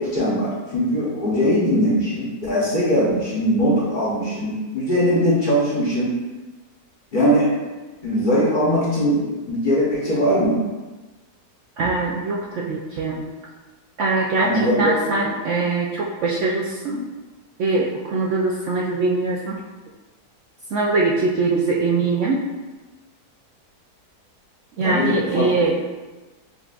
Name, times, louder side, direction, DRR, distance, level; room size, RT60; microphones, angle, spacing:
voice 1, 0.0-6.2 7.1-7.5 8.0-10.6 14.4-15.0 24.8-25.7, equal, 40° left, -7 dB, 0.8 m, -20 dB
voice 2, 11.8-13.2 14.0-14.5 14.8-17.0 17.6-19.5 20.7-22.4 24.8-25.7, right 3 dB, 70° right, -4 dB, 0.7 m, -22 dB
6.8 x 2.3 x 2.4 m, 1.2 s
omnidirectional pair, 1.7 m